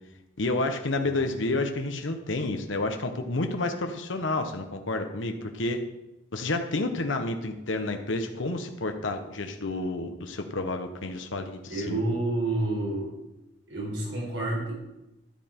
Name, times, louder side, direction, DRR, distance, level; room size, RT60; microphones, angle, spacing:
voice 1, 0.4-5.8 6.3-12.0, left 2 dB, 85° left, 6 dB, 1.0 m, -30 dB
voice 2, 11.7-13.1 13.7-14.8, right 2 dB, 75° right, -3 dB, 5.0 m, -29 dB
13.5 x 8.9 x 4.4 m, 0.96 s
head